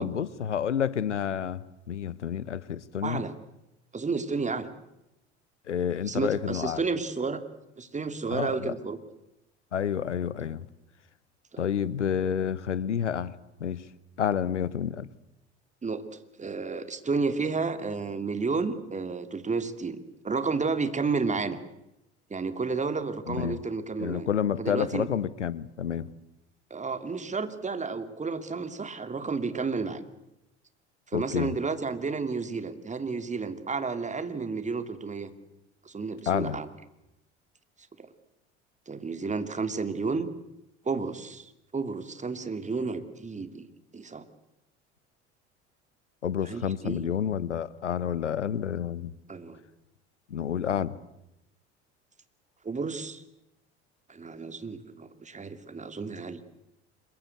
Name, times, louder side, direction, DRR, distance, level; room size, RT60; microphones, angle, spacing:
voice 1, 0.0-3.2 5.7-6.8 8.3-8.7 9.7-10.6 11.6-13.8 14.2-15.1 23.3-23.6 24.0-26.1 31.1-31.5 36.3-36.6 46.2-49.1 50.3-50.9, left 8 dB, 85° left, 20 dB, 1.0 m, -29 dB
voice 2, 3.0-3.3 3.9-4.7 6.1-7.4 7.8-9.0 11.5-11.6 15.8-16.0 16.4-21.6 22.3-24.3 24.6-25.1 26.7-30.0 31.1-35.3 35.8-36.7 38.0-38.1 38.9-40.3 40.8-43.7 43.9-44.3 46.4-47.1 49.3-49.6 52.6-53.2 54.1-56.4, right 4 dB, 20° right, 10 dB, 2.7 m, -31 dB
26.5 x 23.0 x 8.1 m, 0.88 s
figure-of-eight pair, 70°, 35 cm